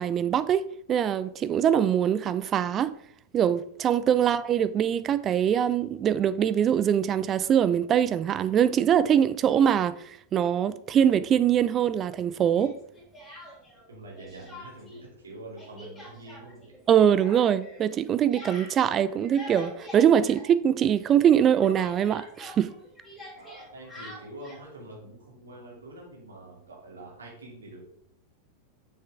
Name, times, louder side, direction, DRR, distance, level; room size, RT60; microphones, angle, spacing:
voice 1, 0.0-3.0 3.3-10.0 10.3-12.8 16.9-22.7, right 9 dB, 30° right, 0.4 m, -23 dB
Speech, 12.5-13.9 14.2-15.0 15.3-21.0 21.2-24.7, left 1 dB, 15° left, 3.1 m, -45 dB
voice 2, 13.9-16.7 23.4-27.8, right 1 dB, 70° right, 2.7 m, -45 dB
7.2 x 6.2 x 3.5 m
figure-of-eight pair, 90°, 0 cm